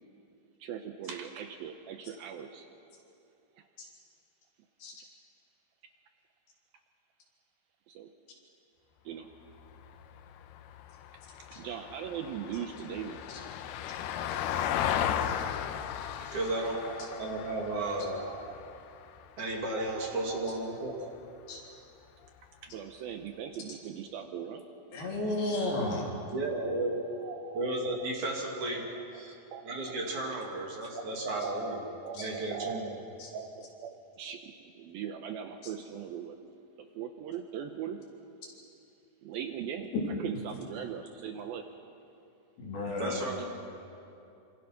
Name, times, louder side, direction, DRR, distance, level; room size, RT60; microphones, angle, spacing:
voice 1, 0.6-2.7 3.6-3.7 7.9-8.1 9.1-9.3 11.5-13.2 16.7-17.2 17.5-18.6 19.8-20.5 20.9-21.2 22.6-24.6 26.6-26.7 27.2-28.1 28.9-29.2 29.5-30.0 31.0-33.0 33.3-36.4 37.0-38.0 39.2-39.9 40.2-41.7 43.4-43.5, right 8 dB, 75° right, 6 dB, 2.5 m, -41 dB
Vehicle, 9.5-19.9 22.2-22.3, left 9 dB, 80° left, 2.7 m, -36 dB
voice 2, 16.2-16.8 17.2-18.2 19.4-21.0 26.3-27.1 27.5-28.9 29.1-29.4 29.7-31.8 32.2-32.9 43.0-43.5, right 2 dB, 50° right, -1 dB, 3.8 m, -33 dB
voice 3, 24.9-26.1 39.9-40.0 42.6-43.2, left 2 dB, 65° left, -3 dB, 5.4 m, -32 dB
27.0 x 26.0 x 5.9 m, 2.7 s
omnidirectional pair, 4.8 m